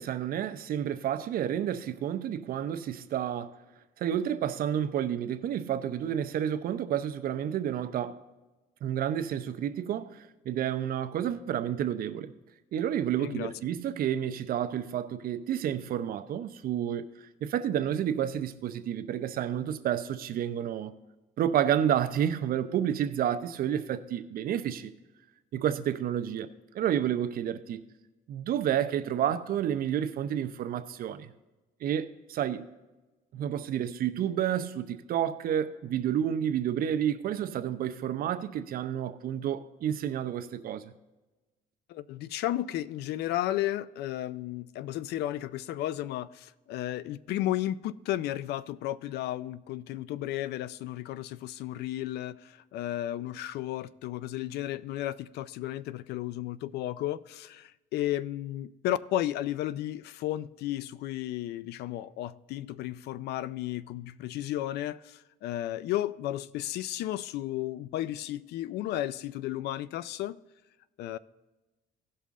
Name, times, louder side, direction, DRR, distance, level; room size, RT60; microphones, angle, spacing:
voice 1, 0.0-3.5 4.0-8.2 8.8-12.3 12.7-17.0 17.4-20.9 21.4-24.9 25.5-26.5 26.7-27.8 28.3-31.3 31.8-32.7 33.3-40.8, right 10 dB, 60° right, 0.7 m, -30 dB
voice 2, 13.2-13.5 41.9-70.4 71.0-71.2, left 13 dB, 75° left, 0.4 m, -33 dB
16.5 x 5.6 x 3.7 m
cardioid pair, 110°, 17 cm